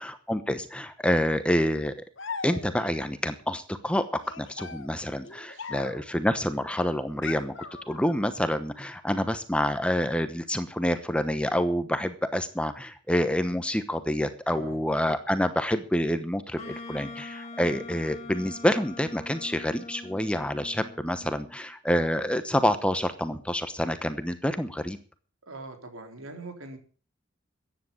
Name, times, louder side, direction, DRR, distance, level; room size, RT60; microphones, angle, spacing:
voice 1, 0.0-1.9 2.4-7.5 7.9-25.0, equal, 5° left, 10 dB, 1.0 m, -27 dB
sound 1, 2.2-3.0 4.2-6.2 7.2-8.3, left 5 dB, 60° left, 1.3 m, -40 dB
voice 2, 14.5-14.8 25.4-26.8, right 2 dB, 80° right, 5 dB, 3.8 m, -42 dB
Wind instrument woodwind instrument, 16.6-21.6, left 3 dB, 30° left, 2.4 m, -43 dB
14.5 x 9.9 x 7.2 m, 0.40 s
head